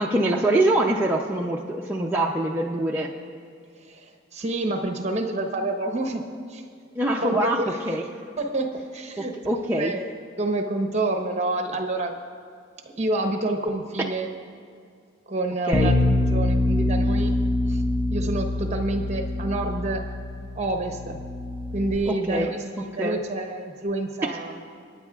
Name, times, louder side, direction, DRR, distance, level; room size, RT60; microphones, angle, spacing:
voice 1, 0.0-3.1 7.0-8.0 9.2-9.9 15.7-15.9 22.1-22.5 23.0-23.2, right 1 dB, 10° right, -3 dB, 0.5 m, -24 dB
voice 2, 4.3-6.2 6.5-6.6 7.2-7.9 8.4-9.3 9.8-10.1 10.4-12.2 13.0-14.3 15.3-17.3 17.7-17.8 18.1-20.0 20.6-21.2 21.7-24.6, right 2 dB, 35° right, 4 dB, 1.0 m, -28 dB
Bass guitar, 15.7-22.0, left 1 dB, 30° left, 0.6 m, -25 dB
27.5 x 9.7 x 2.4 m, 2.3 s
head